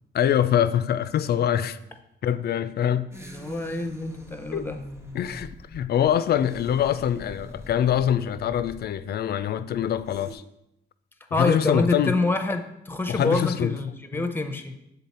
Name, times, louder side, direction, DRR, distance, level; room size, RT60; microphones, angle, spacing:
voice 1, 0.1-1.8 2.2-3.1 4.5-4.7 5.1-10.4 11.4-12.2 13.1-13.8 14.1-14.2, left 10 dB, 55° left, 0.4 m, -24 dB
sound 1, 3.1-10.3, equal, 15° right, 1.2 m, -43 dB
voice 2, 3.2-4.8 11.3-14.7, left 2 dB, 10° left, 0.7 m, -27 dB
6.7 x 4.0 x 4.2 m
cardioid pair, 90°, 20 cm